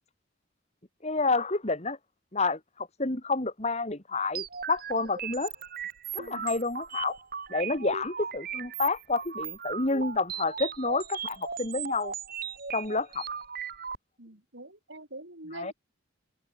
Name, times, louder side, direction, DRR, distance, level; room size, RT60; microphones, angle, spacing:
voice 1, 1.0-2.0 2.3-5.5 6.1-7.2 7.5-12.1 12.7-13.2 15.5-15.7, left 3 dB, 35° left, 2.3 m, -29 dB
sound 1, 4.3-14.0, right 7 dB, 50° right, 3.8 m, -37 dB
voice 2, 6.2-6.5 7.6-7.8 14.2-15.7, right 2 dB, 65° right, 6.6 m, -46 dB
head